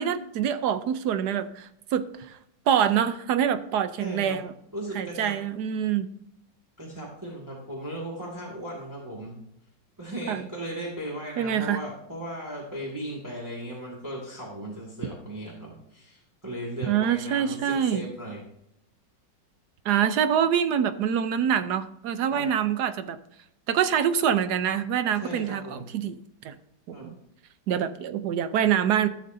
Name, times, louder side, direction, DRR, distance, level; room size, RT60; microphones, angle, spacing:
voice 1, 0.0-2.4 2.7-4.5 4.9-6.1 10.3-10.4 11.4-11.8 16.9-18.0 19.8-23.2 23.7-26.2 26.4-26.6 26.9-27.1 27.7-29.1, right 9 dB, 70° right, 11 dB, 1.2 m, -25 dB
voice 2, 4.0-4.4 4.7-5.4 6.8-9.4 10.0-18.4 22.3-22.5 25.2-25.9 26.9-27.1, right 1 dB, 10° right, -4 dB, 2.1 m, -37 dB
15.5 x 6.6 x 2.7 m, 0.76 s
omnidirectional pair, 2.0 m